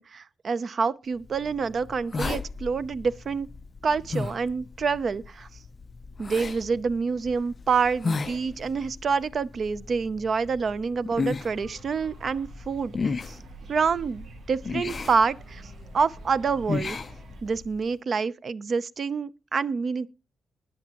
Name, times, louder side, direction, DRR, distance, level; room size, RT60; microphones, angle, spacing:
voice 1, 0.0-3.5 3.8-5.5 6.2-13.4 13.7-15.6 15.9-17.0 17.4-20.1, right 5 dB, 35° right, 0.5 m, -27 dB
sound 1, 1.2-17.8, left 4 dB, 25° left, 0.5 m, -36 dB
sound 2, 11.5-17.4, right 3 dB, 80° right, 7.0 m, -48 dB
20.5 x 7.2 x 2.9 m
wide cardioid pair, 175°, 0 cm